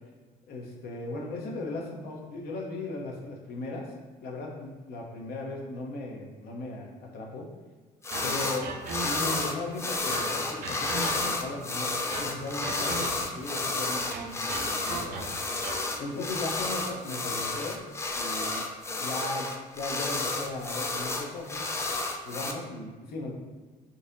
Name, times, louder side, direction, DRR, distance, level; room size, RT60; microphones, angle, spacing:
voice 1, 0.5-3.9 4.2-7.5 8.2-8.7 9.0-15.5 16.0-17.8 18.2-18.7 19.0-21.7 22.2-23.3, left 2 dB, 65° left, 0 dB, 0.7 m, -37 dB
sound 1, 8.0-8.6 8.9-22.5, left 3 dB, 15° left, 0.3 m, -31 dB
sound 2, 8.1-9.5 10.1-11.6 12.1-13.5 14.1-16.0, right 3 dB, 60° right, 0.5 m, -39 dB
3.9 x 2.7 x 2.5 m, 1.3 s
cardioid pair, 110°, 17 cm